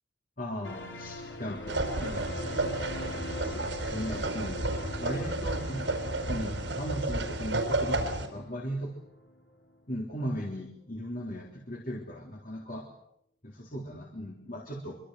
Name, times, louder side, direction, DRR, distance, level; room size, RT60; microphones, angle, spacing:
voice 1, 0.4-2.4 3.4-4.6 5.0-8.9 9.9-12.8 13.4-15.0, equal, 50° left, 0 dB, 3.6 m, -37 dB
sound 1, 0.6-9.8 10.1-10.2, left 1 dB, 80° left, 4.1 m, -42 dB
sound 2, 1.7-8.3, right 2 dB, 70° right, 4.9 m, -32 dB
25.0 x 24.5 x 7.9 m, 0.75 s
head